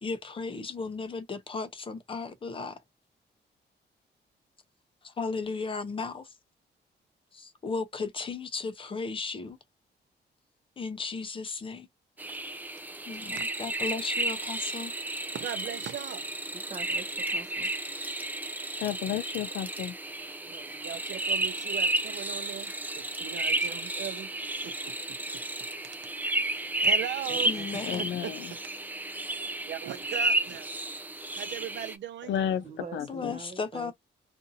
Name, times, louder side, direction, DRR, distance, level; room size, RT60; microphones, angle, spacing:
voice 1, 0.0-2.8 5.0-6.3 7.3-9.6 10.8-11.9 13.1-14.9 27.4-28.2 33.1-33.9, left 4 dB, 30° left, 0.7 m, -35 dB
sound 1, 12.2-32.0, right 2 dB, 10° right, 0.4 m, -32 dB
voice 2, 15.3-16.3 20.4-24.3 24.6-24.9 25.3-25.4 26.8-27.6 28.0-28.3 29.7-30.7 31.3-32.4, right 11 dB, 75° right, 0.6 m, -39 dB
voice 3, 16.5-17.9 27.3-27.9 32.6-33.9, right 4 dB, 35° right, 0.8 m, -44 dB
voice 4, 18.8-19.9 27.9-28.5 32.3-32.6 32.9-33.4, left 10 dB, 90° left, 0.4 m, -32 dB
2.6 x 2.5 x 2.7 m
cardioid pair, 130°, 19 cm